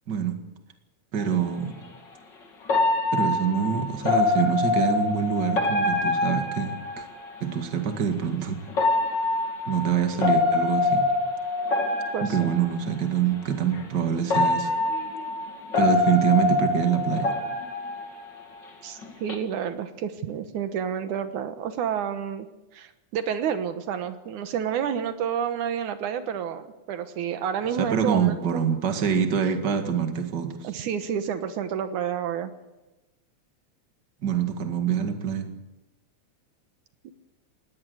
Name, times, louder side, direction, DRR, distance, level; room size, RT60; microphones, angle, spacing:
voice 1, 0.1-0.4 1.1-1.8 3.1-7.1 7.4-8.6 9.7-11.1 12.2-14.7 15.8-17.3 27.8-30.7 34.2-35.5, right 8 dB, 40° right, 6 dB, 2.3 m, -25 dB
sound 1, 1.2-1.3 2.7-7.4 8.7-12.9 13.7-13.8 14.3-18.7 19.0-19.3, left 3 dB, 40° left, 2.9 m, -25 dB
voice 2, 12.1-12.5 18.8-22.5 22.7-28.6 30.6-32.5 37.0-37.1, right 8 dB, 85° right, 9 dB, 2.7 m, -30 dB
20.0 x 18.0 x 8.0 m, 1.0 s
omnidirectional pair, 3.4 m